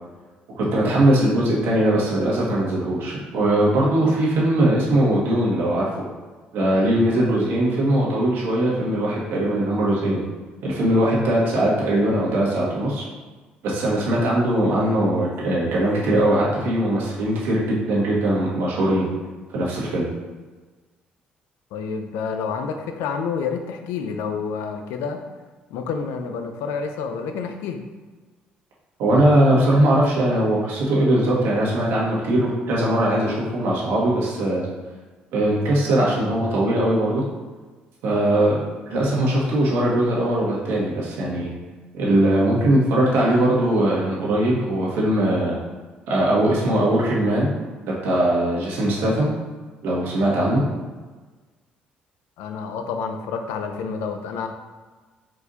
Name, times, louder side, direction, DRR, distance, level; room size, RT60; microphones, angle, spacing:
voice 1, 0.6-5.9 6.5-10.2 10.6-13.0 13.6-19.0 19.5-20.0 29.0-34.6 35.3-37.2 38.0-38.6 38.9-41.5 41.9-45.6 46.1-47.5 47.8-49.3 49.8-50.6, right 1 dB, 80° right, -5 dB, 1.5 m, -20 dB
voice 2, 21.7-25.2 25.7-27.8 52.4-54.5, left 5 dB, 85° left, 5 dB, 0.5 m, -28 dB
4.6 x 2.5 x 4.0 m, 1.3 s
supercardioid pair, 80°, 4 cm